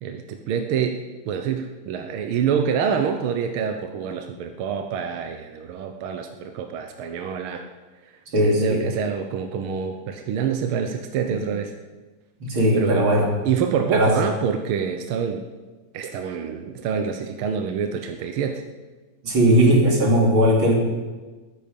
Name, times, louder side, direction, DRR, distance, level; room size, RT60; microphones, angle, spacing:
voice 1, 0.0-1.0 1.2-7.6 8.0-8.1 8.4-11.7 12.7-15.4 15.9-18.6, right 7 dB, 70° right, 6 dB, 1.3 m, -26 dB
voice 2, 8.3-8.8 12.4-13.3 13.9-14.1 19.2-20.7, equal, 45° right, -1 dB, 3.4 m, -18 dB
21.5 x 9.8 x 5.3 m, 1.3 s
omnidirectional pair, 3.4 m